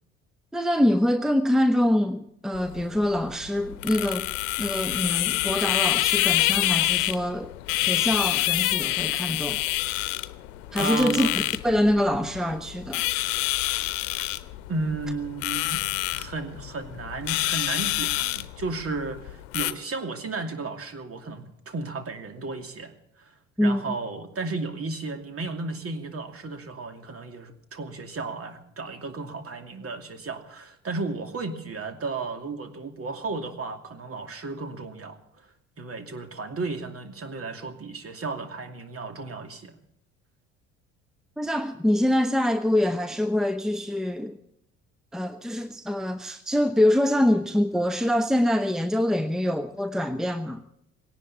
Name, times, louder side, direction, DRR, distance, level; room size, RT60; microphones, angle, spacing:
voice 1, 0.5-4.3 4.6-9.6 10.7-13.3 23.6-23.8 41.4-44.4 45.1-50.6, left 1 dB, ahead, 10 dB, 1.1 m, -25 dB
sound 1, 2.5-19.7, left 18 dB, 65° left, 1.0 m, -27 dB
voice 2, 10.8-11.4 14.7-23.3 23.6-35.5 35.8-39.7, right 3 dB, 35° right, 7 dB, 2.7 m, -34 dB
19.5 x 18.0 x 4.2 m, 0.75 s
figure-of-eight pair, 55°, 39 cm